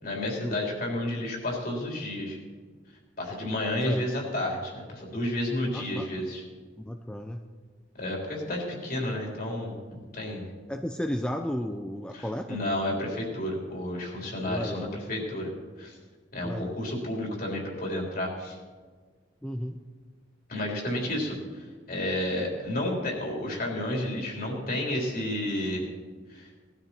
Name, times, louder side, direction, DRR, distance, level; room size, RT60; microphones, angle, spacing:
voice 1, 0.0-2.4 3.2-6.4 8.0-10.4 12.1-15.5 15.8-15.9 16.3-18.6 20.5-21.4 21.9-25.8 26.3-26.5, left 1 dB, 50° left, -1 dB, 3.6 m, -31 dB
voice 2, 5.7-6.1 6.8-7.4 10.7-12.6 14.5-15.0 16.4-16.8 19.4-19.8, equal, 5° left, 5 dB, 0.5 m, -33 dB
19.0 x 12.5 x 4.4 m, 1.5 s
head